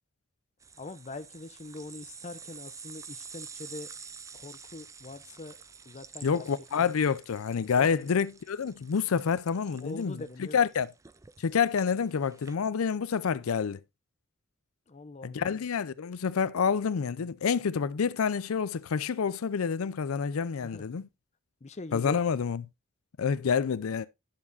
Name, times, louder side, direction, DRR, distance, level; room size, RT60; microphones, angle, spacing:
sound 1, 0.6-12.6, right 6 dB, 15° right, 0.4 m, -49 dB
voice 1, 0.8-3.9 4.3-5.6 5.9-6.5 7.8-8.1 9.8-10.6 14.9-15.6 20.6-20.9 21.6-22.2, left 2 dB, 35° left, 0.6 m, -43 dB
voice 2, 6.2-10.9 11.4-13.8 15.2-21.1 21.9-22.6 23.2-24.1, left 6 dB, 85° left, 0.5 m, -28 dB
10.5 x 7.2 x 2.5 m
head